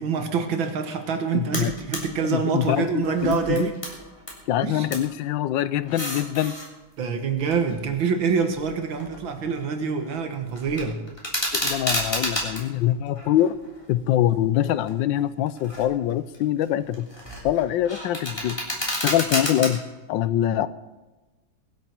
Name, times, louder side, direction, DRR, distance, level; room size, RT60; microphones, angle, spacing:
voice 1, 0.0-3.8 4.6-4.9 7.0-11.1 11.6-11.7, right 5 dB, 90° right, 6 dB, 2.2 m, -26 dB
voice 2, 1.3-1.7 2.3-3.7 4.5-6.5 11.5-13.6 13.9-17.1 17.4-18.6 19.0-19.8 20.1-20.7, left 12 dB, 80° left, 15 dB, 1.3 m, -24 dB
sound 1, 1.5-2.0 2.4-4.4 4.7-5.1 5.7-6.7 7.4-9.5 9.8-10.2 10.5-12.6 13.2-14.1 14.6-14.9 15.5-16.0 16.3-19.7, equal, 15° left, 3.4 m, -31 dB
23.0 x 9.2 x 4.5 m, 1.1 s
omnidirectional pair, 2.1 m